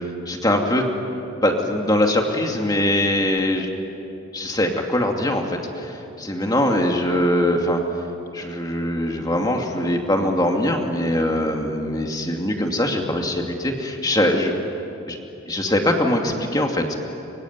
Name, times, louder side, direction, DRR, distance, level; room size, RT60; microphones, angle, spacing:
voice 1, 0.3-0.8 1.4-3.7 4.3-7.8 8.3-14.5 15.1-15.2 15.5-16.8, left 1 dB, 20° left, 2 dB, 2.5 m, -22 dB
25.0 x 24.5 x 9.6 m, 2.8 s
head